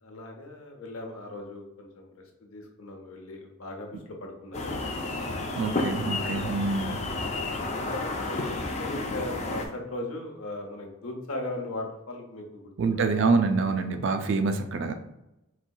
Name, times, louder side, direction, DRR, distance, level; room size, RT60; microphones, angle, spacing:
voice 1, 0.0-5.2 7.2-13.0, left 2 dB, 75° left, 2 dB, 0.7 m, -39 dB
sound 1, 4.5-9.7, left 2 dB, 30° left, 0.4 m, -31 dB
voice 2, 5.5-7.0 12.8-14.9, right 4 dB, 55° right, 7 dB, 0.4 m, -26 dB
4.1 x 2.6 x 2.3 m, 0.91 s
head